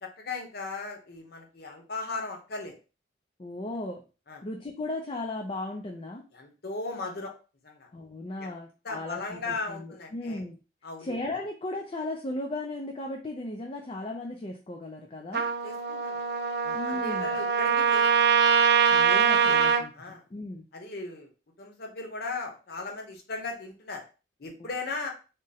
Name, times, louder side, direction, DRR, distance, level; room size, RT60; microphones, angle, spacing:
voice 1, 0.0-2.7 4.3-4.4 6.3-7.3 7.6-7.9 8.4-8.6 8.8-10.4 10.8-11.1 15.3-16.2 16.6-18.3 19.1-19.7 19.9-20.2 20.7-21.3 21.6-24.0 24.4-25.1, left 3 dB, 55° left, 2 dB, 0.9 m, -37 dB
voice 2, 3.4-4.0 4.4-6.2 7.9-10.6 11.0-15.5 16.7-17.3 18.9-20.7, left 2 dB, 30° left, 1 dB, 0.4 m, -36 dB
Trumpet, 15.3-19.9, right 6 dB, 55° right, 0.4 m, -23 dB
3.6 x 2.1 x 4.1 m, 0.33 s
head